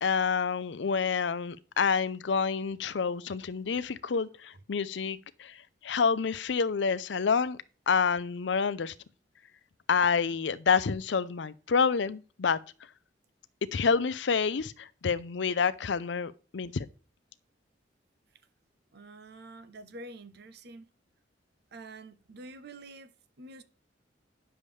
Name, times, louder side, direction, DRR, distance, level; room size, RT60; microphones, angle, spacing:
voice 1, 0.0-7.6 7.9-8.9 9.9-12.6 13.7-16.9, left 5 dB, 70° left, 0.5 m, -28 dB
voice 2, 18.9-20.9 21.7-23.6, right 2 dB, 60° right, 0.8 m, -47 dB
9.8 x 7.0 x 3.3 m
head